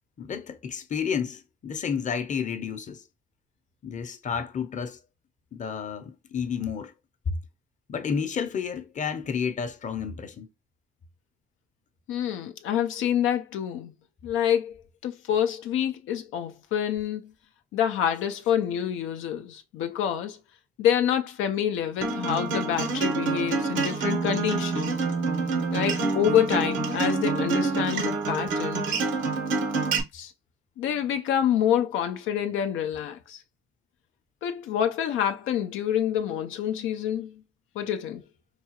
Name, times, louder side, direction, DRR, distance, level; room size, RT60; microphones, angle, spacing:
voice 1, 0.2-3.0 3.8-5.0 5.5-6.9 7.3-7.4 7.9-10.5, left 6 dB, 40° left, 0.6 m, -31 dB
voice 2, 12.1-13.9 14.2-14.8 15.0-17.3 17.7-20.4 20.8-24.9 25.7-28.9 30.1-30.3 30.8-33.4 34.4-37.3 37.8-38.2, left 9 dB, 85° left, 0.5 m, -27 dB
Acoustic guitar, 22.0-30.0, right 4 dB, 75° right, 0.8 m, -27 dB
4.7 x 2.3 x 2.8 m
cardioid pair, 90°, 20 cm